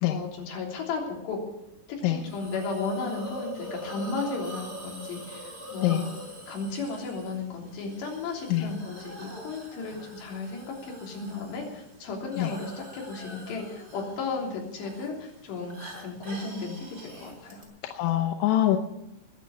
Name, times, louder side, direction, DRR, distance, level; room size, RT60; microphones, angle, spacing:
voice 1, 0.1-1.4 1.9-6.1 6.5-17.6, left 4 dB, 70° left, -1 dB, 5.5 m, -34 dB
Hiss, 2.2-17.6, equal, 15° right, 3.6 m, -44 dB
voice 2, 17.8-18.8, left 13 dB, 90° left, 5 dB, 3.3 m, -24 dB
21.0 x 8.4 x 7.1 m, 0.90 s
omnidirectional pair, 5.2 m